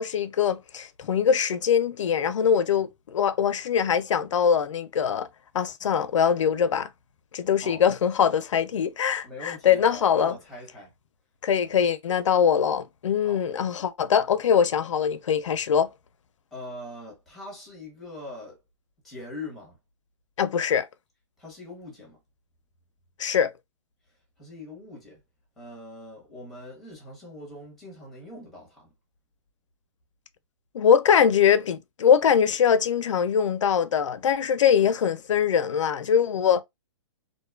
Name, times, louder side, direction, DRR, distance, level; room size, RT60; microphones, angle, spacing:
voice 1, 0.0-5.3 5.5-6.9 7.3-10.3 11.4-15.9 20.4-20.9 23.2-23.5 30.7-36.6, left 8 dB, 90° left, 0.5 m, -22 dB
voice 2, 9.2-10.9 13.2-13.7 16.5-18.6 19.0-19.8 21.4-22.2 24.4-25.2 25.6-28.9, left 2 dB, ahead, 0.8 m, -42 dB
2.6 x 2.2 x 2.2 m
hypercardioid pair, 170°, 15 cm